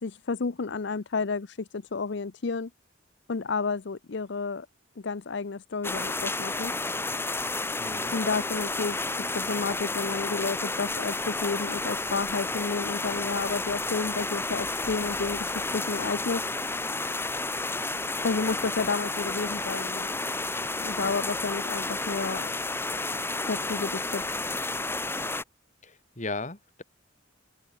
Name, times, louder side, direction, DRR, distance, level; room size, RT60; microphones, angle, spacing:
voice 1, 0.0-2.7 3.3-4.7 5.0-6.7 8.1-16.5 18.2-20.1 20.8-22.5 23.5-24.3, left 4 dB, 60° left, 0.6 m, -31 dB
sound 1, 5.8-25.4, left 2 dB, 10° left, 1.6 m, -31 dB
voice 2, 7.8-8.2 25.8-26.8, left 3 dB, 40° left, 3.4 m, -36 dB
open air
head